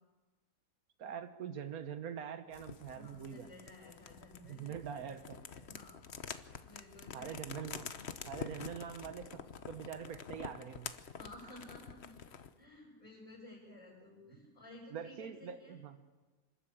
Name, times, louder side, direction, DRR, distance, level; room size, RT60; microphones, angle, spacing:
voice 1, 1.0-3.5 4.4-5.4 7.1-7.9 8.3-10.9 14.9-16.0, right 8 dB, 85° right, 10 dB, 1.6 m, -44 dB
sound 1, 2.5-12.6, left 6 dB, 50° left, 1.1 m, -48 dB
voice 2, 2.9-5.2 5.5-6.0 6.6-7.5 11.2-12.1 12.6-15.8, left 1 dB, 25° left, -10 dB, 7.9 m, -55 dB
27.0 x 13.0 x 8.6 m, 1.3 s
omnidirectional pair, 1.5 m